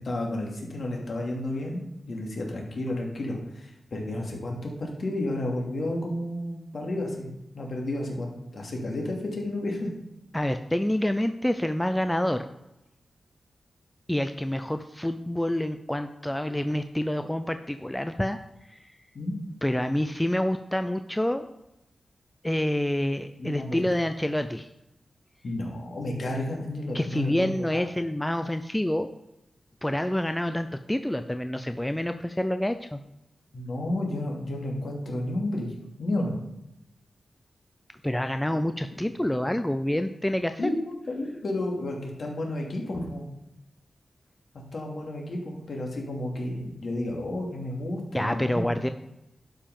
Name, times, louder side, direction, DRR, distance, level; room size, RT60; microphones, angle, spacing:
voice 1, 0.0-9.9 19.1-19.4 23.4-23.9 25.4-27.9 33.5-35.7 36.0-36.4 38.5-38.6 40.6-43.2 44.7-48.7, left 1 dB, 60° left, 0 dB, 2.5 m, -32 dB
voice 2, 10.3-12.5 14.1-18.4 18.7-18.9 19.6-21.4 22.4-24.7 26.9-29.1 29.8-33.0 38.0-40.7 48.1-48.9, left 1 dB, 10° left, 8 dB, 0.5 m, -27 dB
11.5 x 5.5 x 5.4 m, 0.89 s
wide cardioid pair, 100°, 0 cm